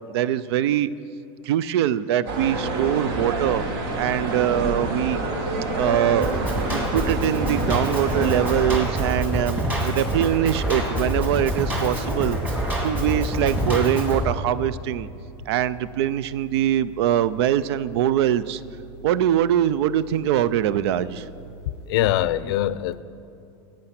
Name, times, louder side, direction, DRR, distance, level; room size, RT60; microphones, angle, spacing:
voice 1, 0.1-0.9 1.4-3.6 4.0-5.2 5.8-12.4 12.8-15.1 15.5-18.6 19.0-21.3, right 11 dB, 85° right, 0.5 m, -23 dB
sound 1, 2.3-8.8, right 2 dB, 65° right, 1.8 m, -28 dB
sound 2, 3.9-22.1, right 2 dB, 50° right, 2.7 m, -45 dB
Drum kit, 6.2-14.2, equal, 15° right, 2.0 m, -26 dB
voice 2, 21.7-23.0, left 13 dB, 70° left, 0.5 m, -23 dB
15.5 x 8.9 x 5.9 m
supercardioid pair, 180°, 13 cm